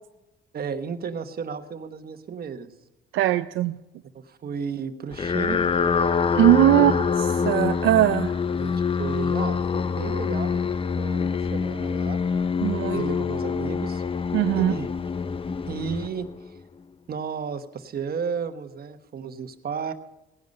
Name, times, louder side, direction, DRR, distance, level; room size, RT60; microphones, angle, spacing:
voice 1, 0.5-2.7 4.1-5.6 6.7-7.0 8.6-10.7 11.0-12.2 12.9-14.0 14.5-14.9 15.7-16.5 17.1-19.9, right 6 dB, 50° right, 9 dB, 1.2 m, -33 dB
voice 2, 3.1-3.8 6.3-8.3 12.6-13.0 14.3-14.7, right 14 dB, 85° right, 9 dB, 0.5 m, -20 dB
sound 1, 5.1-16.6, left 5 dB, 25° left, 0.5 m, -25 dB
17.5 x 10.5 x 5.4 m, 0.95 s
cardioid pair, 90°, 20 cm